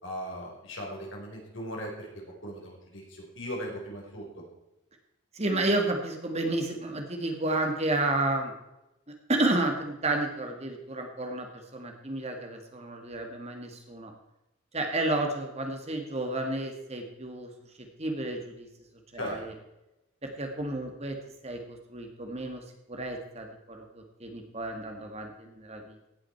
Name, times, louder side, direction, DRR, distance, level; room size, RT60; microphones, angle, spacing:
voice 1, 0.0-4.3 19.1-19.4, equal, 60° left, -1 dB, 4.5 m, -38 dB
voice 2, 5.3-8.5 9.3-14.1 14.7-17.5 18.0-18.7 19.1-19.5 20.2-21.2 21.4-26.1, right 2 dB, 30° right, 3 dB, 1.7 m, -31 dB
17.0 x 8.8 x 4.5 m, 0.94 s
head